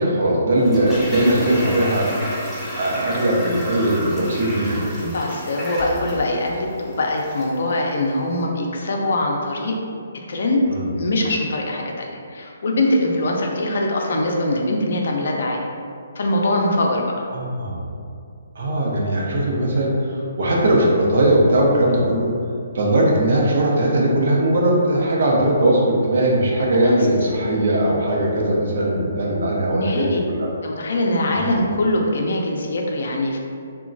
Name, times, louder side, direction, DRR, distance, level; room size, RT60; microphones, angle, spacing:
voice 1, 0.0-2.1 2.8-5.0 10.7-10.9 17.3-17.8 18.6-22.3 22.7-30.5 31.3-31.5, right 1 dB, 65° right, -2 dB, 0.6 m, -19 dB
Toilet flush, 0.6-7.7 7.9-8.0, equal, ahead, 0.6 m, -31 dB
voice 2, 5.0-9.8 10.3-10.6 11.0-15.6 16.2-17.1 26.7-27.0 29.7-30.2 30.6-33.4, left 1 dB, 65° left, 0 dB, 0.4 m, -22 dB
2.9 x 2.2 x 2.5 m, 2.3 s
hypercardioid pair, 150°, 0 cm